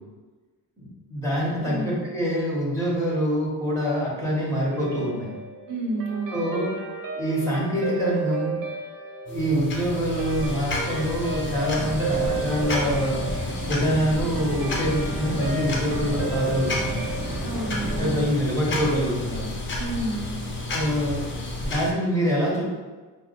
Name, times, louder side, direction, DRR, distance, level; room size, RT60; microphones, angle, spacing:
voice 1, 0.8-5.3 6.3-6.7 7.1-8.6 9.3-13.2 13.7-17.0 18.0-19.5 20.7-21.3 21.6-22.6, equal, 5° left, -6 dB, 1.2 m, -25 dB
voice 2, 1.6-2.0 5.7-6.4 17.4-18.3 19.8-20.4, right 2 dB, 75° right, 1 dB, 0.8 m, -30 dB
Guitar, 4.7-19.3, right 4 dB, 50° right, 0.6 m, -34 dB
sound 1, 9.3-21.9, left 2 dB, 30° left, 0.6 m, -31 dB
sound 2, 11.7-18.3, equal, 20° right, 0.9 m, -34 dB
5.5 x 2.1 x 2.6 m, 1.3 s
cardioid pair, 120°, 42 cm